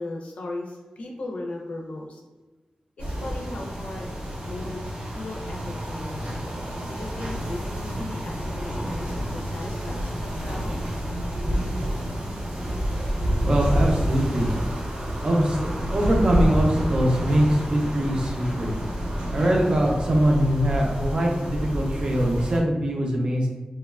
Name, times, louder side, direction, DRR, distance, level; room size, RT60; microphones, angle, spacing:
voice 1, 0.0-2.2 3.0-4.1 4.4-6.3 6.8-10.8, left 2 dB, 75° left, 0 dB, 0.5 m, -37 dB
sound 1, 3.0-22.6, equal, 80° right, 0.7 m, -29 dB
voice 2, 13.4-14.5 15.2-18.7 19.3-23.5, equal, 45° right, 0 dB, 0.5 m, -22 dB
2.9 x 2.2 x 2.3 m, 1.2 s
wide cardioid pair, 140°, 2 cm